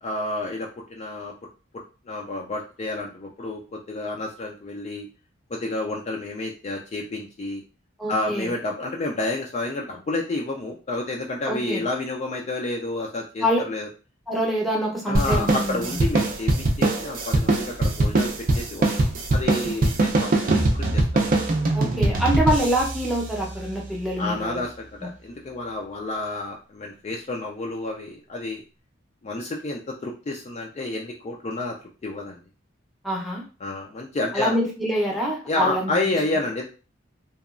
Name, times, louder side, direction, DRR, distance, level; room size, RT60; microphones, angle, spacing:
voice 1, 0.0-1.3 2.1-5.1 5.5-7.6 8.1-13.9 15.1-18.9 19.3-21.4 24.2-28.6 29.2-31.8 32.0-32.4 33.6-34.6 35.5-36.7, left 2 dB, 35° left, 0 dB, 0.3 m, -30 dB
voice 2, 8.0-8.5 11.5-11.8 13.4-13.6 14.3-16.0 21.7-24.6 33.0-33.4 34.3-36.2, equal, ahead, -2 dB, 0.6 m, -25 dB
sound 1, 15.1-24.0, right 2 dB, 45° right, 0.4 m, -23 dB
2.9 x 2.2 x 2.4 m, 0.35 s
head